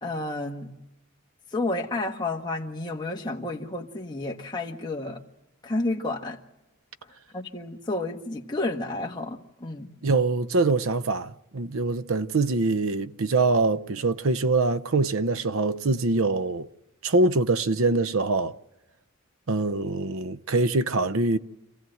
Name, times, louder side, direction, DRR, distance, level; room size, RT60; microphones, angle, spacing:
voice 1, 0.0-0.7 1.5-5.2 5.6-6.4 7.3-9.9, left 2 dB, 20° left, 1.5 m, -31 dB
voice 2, 10.0-16.7 17.0-18.5 19.5-21.4, right 3 dB, 75° right, 0.7 m, -24 dB
27.0 x 15.5 x 7.8 m
head